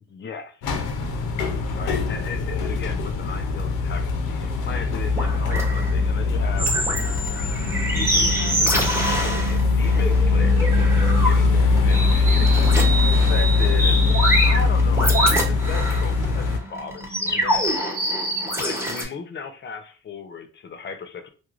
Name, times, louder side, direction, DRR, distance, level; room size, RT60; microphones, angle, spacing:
voice 1, 0.1-0.6 1.7-6.7 7.5-17.9 18.4-21.3, left 5 dB, 40° left, 8 dB, 0.5 m, -36 dB
sound 1, 0.6-16.6, left 4 dB, 90° left, 0.6 m, -21 dB
sound 2, 4.7-19.0, equal, 10° right, 0.8 m, -26 dB
sound 3, 7.4-12.6 13.0-19.2, right 10 dB, 40° right, 0.4 m, -36 dB
3.0 x 2.1 x 2.4 m, 0.36 s
cardioid pair, 90°, 30 cm